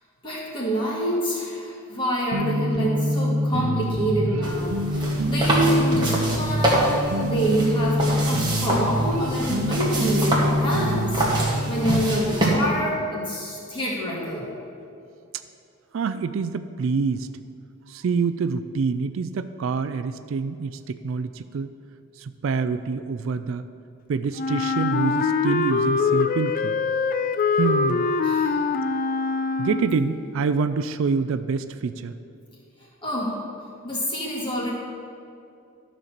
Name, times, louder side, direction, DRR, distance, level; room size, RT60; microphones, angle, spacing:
voice 1, 0.2-14.5 28.2-28.6 33.0-33.4 33.8-34.7, equal, 20° left, -5 dB, 2.0 m, -27 dB
sound 1, 2.3-11.9, equal, 90° right, 0.8 m, -25 dB
sound 2, 4.4-12.5, right 1 dB, 20° right, 1.5 m, -26 dB
voice 2, 15.9-17.3 17.9-21.7 22.2-23.6 24.1-26.8 27.6-28.1 29.6-32.1, right 5 dB, 60° right, 12 dB, 0.3 m, -26 dB
Wind instrument woodwind instrument, 24.4-30.1, left 4 dB, 40° left, 0.4 m, -23 dB
12.5 x 4.4 x 6.6 m, 2.6 s
head